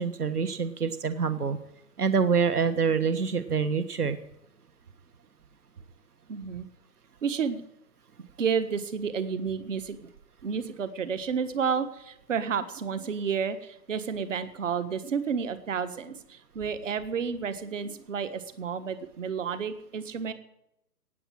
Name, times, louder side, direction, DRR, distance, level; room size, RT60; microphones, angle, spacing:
voice 1, 0.0-1.6 2.0-4.2, right 5 dB, 65° right, 11 dB, 1.5 m, -26 dB
voice 2, 6.3-6.7 7.2-7.6 8.4-10.1 10.4-20.3, right 6 dB, 50° right, 12 dB, 1.6 m, -31 dB
18.5 x 7.7 x 9.2 m, 0.82 s
figure-of-eight pair, 150°, 49 cm